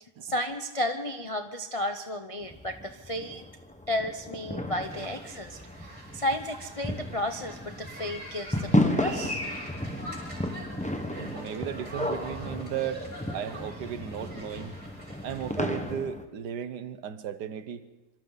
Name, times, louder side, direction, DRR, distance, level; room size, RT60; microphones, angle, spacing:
voice 1, 0.2-3.4 3.9-9.4, left 1 dB, 35° left, 6 dB, 0.5 m, -33 dB
sound 1, 2.4-16.3, left 1 dB, 5° left, 0.8 m, -33 dB
sound 2, 4.8-15.9, equal, 35° right, 5.6 m, -43 dB
voice 2, 11.1-14.7 15.2-17.8, right 9 dB, 70° right, 12 dB, 1.5 m, -35 dB
26.5 x 24.5 x 4.0 m, 1.2 s
omnidirectional pair, 1.9 m